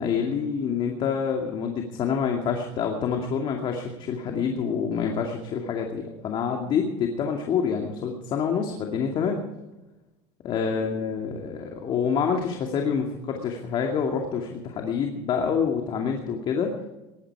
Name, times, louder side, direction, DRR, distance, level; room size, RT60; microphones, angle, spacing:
voice 1, 0.0-9.4 10.4-16.7, left 6 dB, 45° left, 2 dB, 2.4 m, -27 dB
19.5 x 14.0 x 4.8 m, 1.0 s
supercardioid pair, 115°, 11 cm